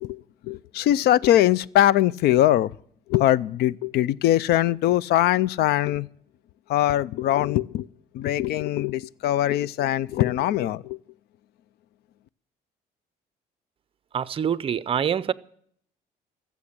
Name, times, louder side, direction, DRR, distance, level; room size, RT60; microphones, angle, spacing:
voice 1, 0.0-2.7 3.1-6.1 6.7-7.9 8.1-11.0, left 13 dB, 70° left, 0.5 m, -22 dB
voice 2, 14.1-15.3, right 8 dB, 35° right, 0.5 m, -25 dB
14.5 x 7.1 x 9.9 m
cardioid pair, 110°, 17 cm